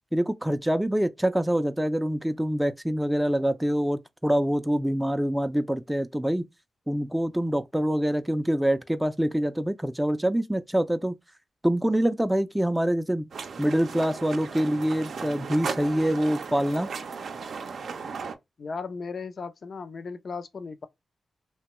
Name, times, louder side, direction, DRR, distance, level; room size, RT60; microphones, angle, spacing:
voice 1, 0.1-6.5 6.9-11.1 11.6-13.3 13.6-16.9, equal, 5° right, 0.3 m, -25 dB
sound 1, 13.3-18.4, right 5 dB, 75° right, 0.4 m, -36 dB
voice 2, 18.6-20.9, left 4 dB, 65° left, 0.4 m, -36 dB
2.8 x 2.1 x 2.9 m
cardioid pair, 55°, 0 cm